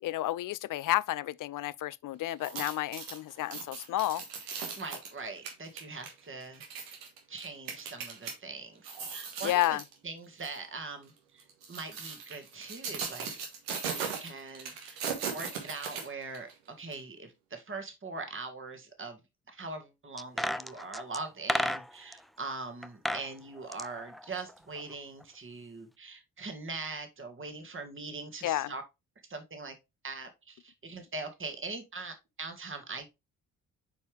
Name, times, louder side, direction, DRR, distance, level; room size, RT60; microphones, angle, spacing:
voice 1, 0.0-4.2 9.4-9.8 28.4-28.7, left 15 dB, 55° left, 0.5 m, -31 dB
sound 1, 2.3-8.3 8.8-9.9 10.4-10.6 11.4-16.5 16.9-17.0, right 6 dB, 85° right, 1.5 m, -38 dB
voice 2, 4.8-7.0 7.3-9.8 10.0-13.3 13.8-15.0 15.3-19.2 19.5-28.8 29.3-29.8 30.0-33.1, right 3 dB, 30° right, 1.8 m, -42 dB
sound 2, 20.2-22.2 22.8-23.3 23.6-24.9 25.2-25.3, equal, ahead, 0.4 m, -33 dB
7.0 x 4.6 x 3.3 m
hypercardioid pair, 40°, 40 cm